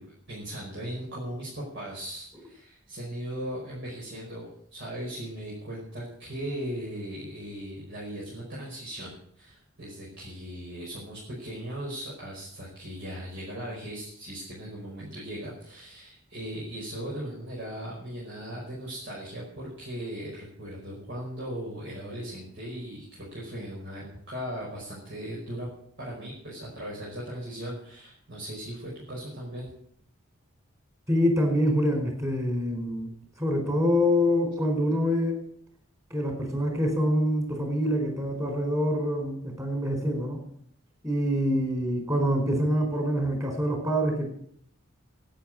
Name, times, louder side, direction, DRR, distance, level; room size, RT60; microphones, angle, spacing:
voice 1, 0.0-25.7 26.0-29.7, equal, 55° right, -6 dB, 5.3 m, -38 dB
voice 2, 31.1-33.1 33.4-35.4 36.1-40.4 41.0-44.3, equal, 15° right, 3 dB, 4.7 m, -25 dB
11.5 x 9.5 x 9.5 m, 0.66 s
head